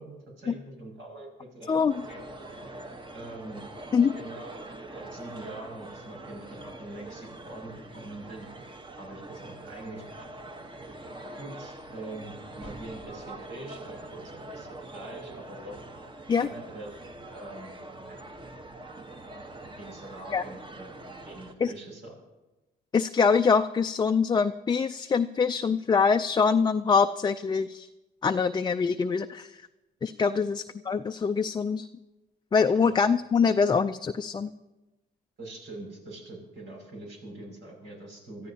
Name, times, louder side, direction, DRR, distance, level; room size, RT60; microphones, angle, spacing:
voice 1, 0.0-1.8 2.1-2.2 3.1-3.6 4.1-8.5 8.9-10.3 11.4-15.8 16.4-17.0 17.3-17.7 18.1-18.2 19.8-20.9 21.3-22.1 30.3-30.5 32.7-33.0 35.4-38.5, right 2 dB, 75° right, 0 dB, 6.1 m, -43 dB
sound 1, 1.9-21.5, right 2 dB, 25° right, 1.1 m, -44 dB
voice 2, 22.9-27.9 28.2-29.6 30.0-31.9 32.5-34.5, left 5 dB, 25° left, 7 dB, 0.4 m, -24 dB
24.5 x 14.0 x 2.8 m, 1.0 s
cardioid pair, 95°, 19 cm